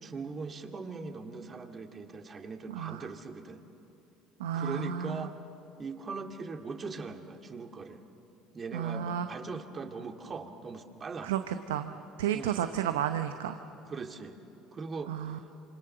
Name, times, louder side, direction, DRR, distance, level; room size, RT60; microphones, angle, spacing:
voice 1, 0.0-3.6 4.5-5.4 5.8-8.0 8.5-11.3 12.3-12.6 13.8-14.4 14.7-15.4, right 4 dB, 35° right, 5 dB, 2.3 m, -40 dB
voice 2, 2.7-3.1 4.4-5.3 8.7-9.3 11.2-11.9 12.2-13.6 15.1-15.4, right 9 dB, 80° right, 8 dB, 0.8 m, -32 dB
27.0 x 26.0 x 6.8 m, 2.9 s
hypercardioid pair, 65°, 0 cm